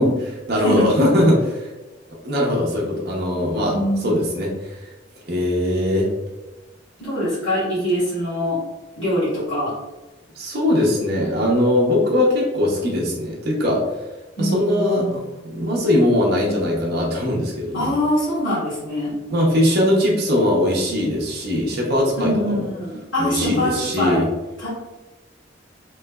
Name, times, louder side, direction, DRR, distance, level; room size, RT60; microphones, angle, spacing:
voice 1, 0.0-1.7 2.2-3.8 4.0-4.9 5.2-6.1 10.4-13.8 14.4-17.9 19.3-22.7 23.2-24.3, left 1 dB, 60° right, -3 dB, 0.8 m, -20 dB
voice 2, 0.5-0.8 3.7-4.2 7.0-8.6 9.0-9.7 14.4-15.2 17.7-19.1 22.2-24.3 24.6-24.7, equal, 85° left, -10 dB, 1.4 m, -23 dB
3.2 x 3.1 x 2.3 m, 1.1 s
head